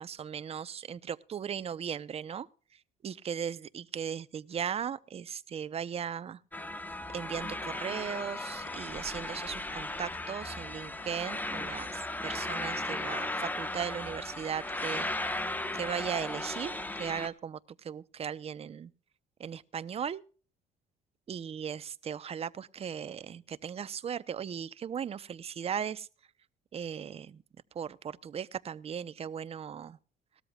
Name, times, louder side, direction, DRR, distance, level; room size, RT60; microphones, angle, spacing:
voice 1, 0.0-2.5 3.0-6.4 7.1-15.1 15.7-18.9 19.4-20.2 21.3-26.1 26.7-27.4 27.7-30.0, right 8 dB, 35° right, 0.7 m, -37 dB
sound 1, 6.5-17.3, left 2 dB, 10° left, 1.0 m, -36 dB
18.5 x 13.0 x 2.3 m
cardioid pair, 110°, 17 cm